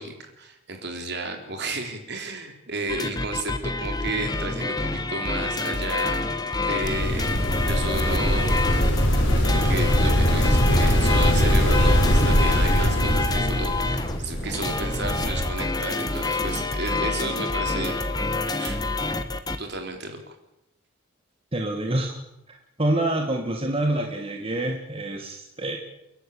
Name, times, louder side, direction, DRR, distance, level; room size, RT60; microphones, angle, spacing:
voice 1, 0.0-6.2 6.6-7.3 7.6-8.7 9.4-18.0 18.6-18.8 19.6-20.3, right 2 dB, 55° right, 5 dB, 4.0 m, -33 dB
sound 1, 2.9-19.6, left 2 dB, 20° left, 1.5 m, -27 dB
sound 2, 6.8-15.5, equal, 60° left, 5.9 m, -22 dB
voice 2, 21.5-22.2 22.5-25.8, right 1 dB, 25° right, 3 dB, 2.0 m, -27 dB
30.0 x 12.0 x 8.7 m, 0.89 s
head